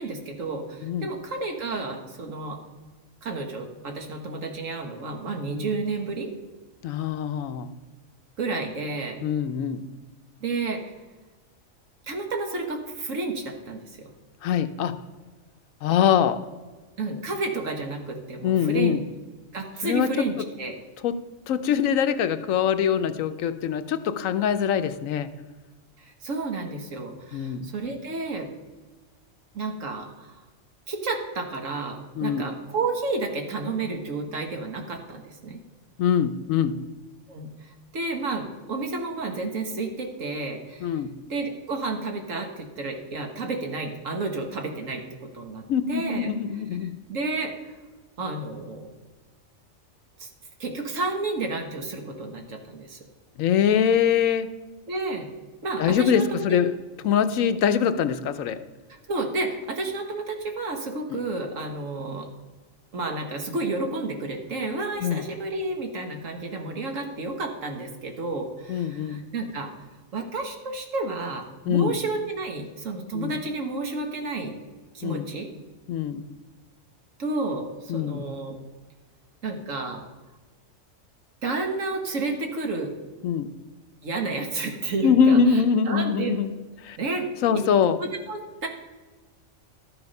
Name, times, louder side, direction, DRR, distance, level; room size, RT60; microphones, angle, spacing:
voice 1, 0.0-2.6 3.2-6.3 8.4-9.2 10.4-10.9 12.1-14.1 17.0-19.0 19.5-20.8 26.0-28.5 29.5-30.4 30.9-35.6 37.3-41.0 41.3-46.3 47.1-47.7 48.2-48.9 50.2-50.3 50.6-53.0 54.9-55.3 55.6-56.6 59.1-62.3 62.9-69.7 70.1-74.5 74.9-75.5 77.2-78.6 79.4-80.1 81.4-83.0 84.0-86.3 87.0-87.3 87.5-87.6 88.0-88.7, right 3 dB, 70° right, 3 dB, 1.7 m, -31 dB
voice 2, 6.8-7.7 9.2-9.8 14.4-14.9 15.8-16.4 18.4-19.0 19.8-20.1 21.0-21.1 21.5-25.3 27.3-27.7 32.2-32.5 36.0-36.8 40.8-41.1 45.7-46.9 53.4-54.5 55.8-56.7 57.0-58.6 61.1-61.2 65.0-65.2 68.7-69.2 71.7-72.0 73.1-73.4 75.0-75.3 75.9-76.3 77.9-78.2 83.2-83.5 85.0-86.5 86.8-87.0 87.4-88.0, left 7 dB, 80° left, 10 dB, 1.0 m, -23 dB
12.5 x 6.9 x 5.4 m, 1.3 s
omnidirectional pair, 1.4 m